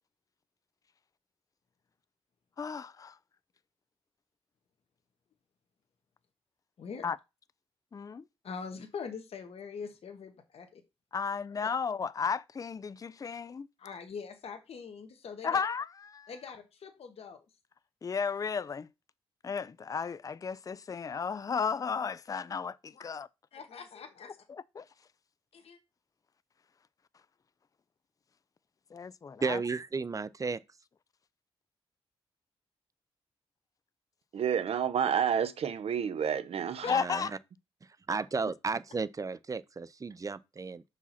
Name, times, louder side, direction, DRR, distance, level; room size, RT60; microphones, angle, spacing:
voice 1, 2.6-3.2 7.0-7.2 7.9-8.2 11.1-13.7 15.4-16.3 18.0-18.9 19.4-23.3 24.5-24.9 28.9-29.6 36.9-37.3, left 6 dB, 35° left, 0.4 m, -34 dB
voice 2, 8.4-10.8 13.8-15.6 16.3-17.6 22.9-23.1 23.5-24.4 25.5-25.8 36.7-37.0, left 5 dB, 70° left, 1.2 m, -43 dB
voice 3, 29.4-30.6 36.9-37.2 38.1-40.8, right 4 dB, 35° right, 0.5 m, -33 dB
voice 4, 34.3-36.8, right 8 dB, 70° right, 0.7 m, -29 dB
5.7 x 4.9 x 4.2 m
cardioid pair, 65°, 11 cm